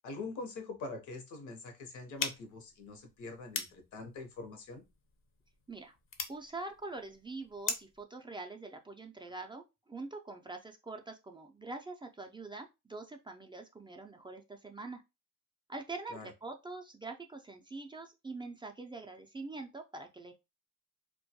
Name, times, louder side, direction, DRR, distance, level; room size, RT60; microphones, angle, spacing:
voice 1, 0.0-4.8 16.1-16.3, left 3 dB, 75° left, 0.8 m, -44 dB
sound 1, 2.2-8.0, left 4 dB, 45° left, 0.5 m, -42 dB
voice 2, 6.3-15.0 15.7-20.3, right 3 dB, 15° right, 0.3 m, -44 dB
2.2 x 2.2 x 2.7 m
cardioid pair, 90°, 30 cm